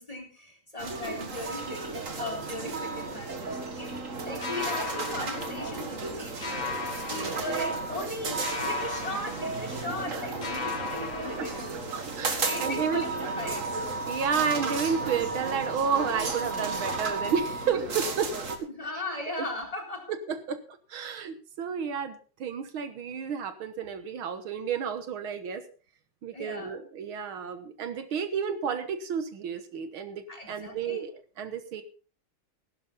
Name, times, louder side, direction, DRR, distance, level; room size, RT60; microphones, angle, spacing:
voice 1, 0.0-3.9 4.2-6.6 7.1-11.8 12.4-13.8 18.7-20.1 26.3-26.8 30.3-31.0, left 2 dB, 15° left, 3 dB, 4.0 m, -37 dB
sound 1, 0.8-18.6, right 3 dB, 40° right, 2.0 m, -33 dB
sound 2, 4.4-6.1 6.4-8.1 8.4-10.1 10.4-12.1, left 4 dB, 35° left, 0.7 m, -37 dB
voice 2, 7.1-7.7 11.4-11.5 11.9-13.1 14.1-18.3 19.4-19.5 20.1-20.6 20.9-25.7 26.2-31.1 31.4-31.8, right 6 dB, 75° right, 9 dB, 2.0 m, -31 dB
15.5 x 12.0 x 4.1 m, 0.39 s
omnidirectional pair, 2.3 m